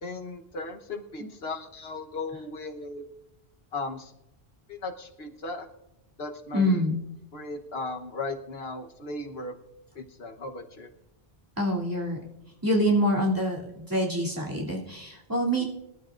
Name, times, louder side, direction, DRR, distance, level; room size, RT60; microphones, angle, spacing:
voice 1, 0.0-3.0 3.7-4.1 4.7-5.7 6.2-6.8 7.3-9.5 9.9-10.9 15.6-15.7, left 3 dB, 70° left, 5 dB, 1.3 m, -36 dB
voice 2, 6.5-7.0 11.6-12.2 12.6-15.6, equal, 20° right, -4 dB, 2.7 m, -26 dB
24.0 x 12.0 x 2.5 m, 0.91 s
omnidirectional pair, 1.1 m